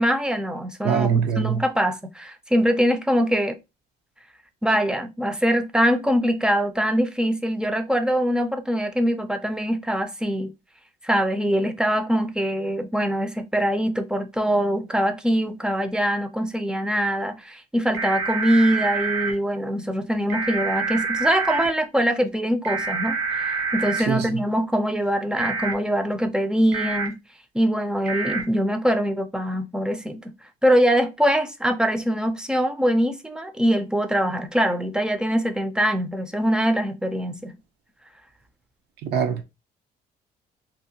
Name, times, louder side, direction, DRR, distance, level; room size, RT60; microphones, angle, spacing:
voice 1, 0.0-3.6 4.6-10.5 11.0-27.2 27.5-30.3 30.6-37.6, equal, 5° right, 0.4 m, -23 dB
voice 2, 0.8-1.5 24.1-24.2 39.0-39.4, right 7 dB, 75° right, 0.6 m, -22 dB
sound 1, 17.9-19.3 20.3-21.7 22.6-24.0 25.4-25.7 26.7-27.1 28.1-28.4, right 4 dB, 55° right, 1.1 m, -27 dB
2.6 x 2.1 x 2.7 m
cardioid pair, 110°, 17 cm